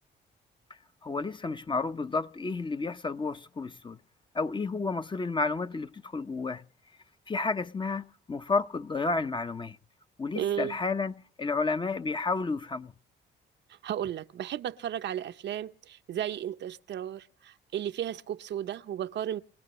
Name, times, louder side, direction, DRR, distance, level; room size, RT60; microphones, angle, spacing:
voice 1, 1.0-4.0 4.3-6.7 7.3-9.8 10.2-12.9, left 3 dB, 25° left, 0.7 m, -31 dB
voice 2, 10.4-10.8 13.8-19.4, right 10 dB, 65° right, 0.7 m, -34 dB
27.5 x 16.0 x 3.1 m
cardioid pair, 90°, 20 cm